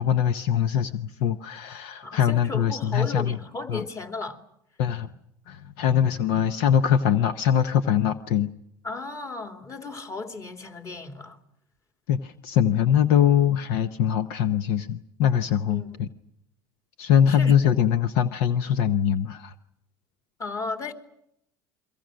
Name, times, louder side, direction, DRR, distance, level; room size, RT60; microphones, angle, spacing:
voice 1, 0.0-3.4 3.7-3.8 4.8-5.1 5.5-8.5 12.1-16.1 17.0-19.5, left 9 dB, 70° left, 0.9 m, -22 dB
voice 2, 2.0-4.4 8.8-11.4 15.7-16.0 17.3-17.8 20.4-20.9, left 3 dB, 30° left, 2.9 m, -35 dB
29.5 x 23.5 x 6.4 m
supercardioid pair, 90°, 11 cm